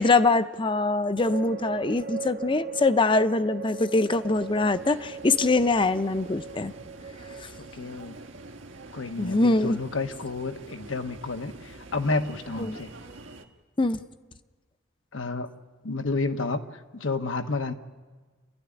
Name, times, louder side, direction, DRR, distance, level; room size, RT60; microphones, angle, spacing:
voice 1, 0.0-6.7 9.2-9.8 12.6-12.8 13.8-14.0, left 3 dB, 25° left, 12 dB, 0.6 m, -23 dB
sound 1, 1.2-8.6, right 5 dB, 50° right, 0.8 m, -39 dB
sound 2, 4.1-13.5, right 2 dB, 80° right, 1.6 m, -46 dB
voice 2, 7.7-8.2 8.9-12.9 15.1-15.5 15.8-17.7, left 3 dB, 85° left, 7 dB, 1.2 m, -30 dB
28.0 x 13.0 x 10.0 m, 1.3 s
head